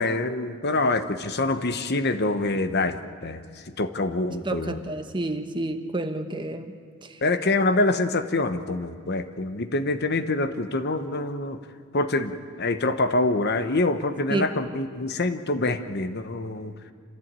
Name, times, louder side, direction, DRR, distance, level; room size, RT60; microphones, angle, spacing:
voice 1, 0.0-4.8 7.2-11.6 11.9-16.7, left 2 dB, 50° left, 9 dB, 1.0 m, -25 dB
voice 2, 4.3-7.2 14.3-14.5, right 2 dB, 20° right, 7 dB, 1.1 m, -30 dB
27.5 x 14.5 x 9.0 m, 2.1 s
head